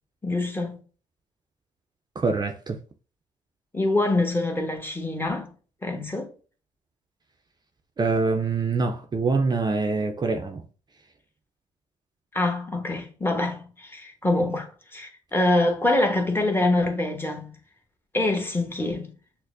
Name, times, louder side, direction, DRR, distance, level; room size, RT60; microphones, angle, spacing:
voice 1, 0.2-0.8 3.7-5.5 5.8-6.3 12.3-17.5 18.1-19.1, left 2 dB, 15° left, 1.1 m, -25 dB
voice 2, 2.2-2.8 8.0-10.6, right 4 dB, 30° right, 0.5 m, -25 dB
6.2 x 2.1 x 2.5 m
hypercardioid pair, 60°, 15 cm